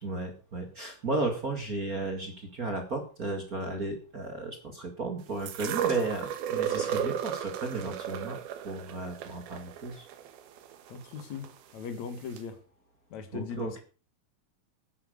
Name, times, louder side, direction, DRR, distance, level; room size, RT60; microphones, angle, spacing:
voice 1, 0.0-8.4 8.6-10.1 13.3-13.7, right 3 dB, 35° right, 1.7 m, -34 dB
sound 1, 5.5-11.5 12.4-12.5, right 9 dB, 85° right, 3.2 m, -34 dB
voice 2, 10.9-12.6 13.1-13.8, left 6 dB, 55° left, 2.8 m, -39 dB
10.5 x 10.5 x 6.5 m
omnidirectional pair, 4.3 m